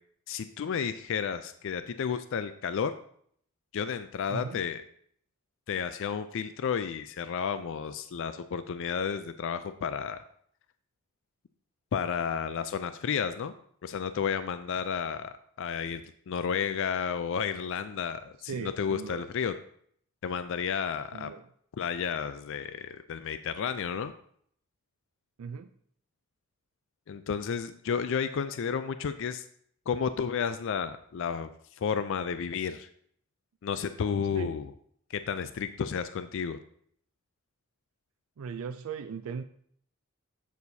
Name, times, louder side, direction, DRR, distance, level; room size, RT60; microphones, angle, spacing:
voice 1, 0.3-2.9 3.7-4.8 5.7-10.2 11.9-13.5 13.8-19.5 20.2-21.3 21.8-24.1 27.1-29.4 29.9-31.5 31.8-32.9 33.6-34.7 35.1-36.6, left 7 dB, 65° left, 11 dB, 0.4 m, -32 dB
voice 2, 4.3-4.6 18.5-19.2 21.1-21.4 25.4-25.7 34.3-34.6 38.4-39.4, right 6 dB, 80° right, 9 dB, 0.4 m, -38 dB
8.1 x 7.0 x 2.7 m, 0.63 s
head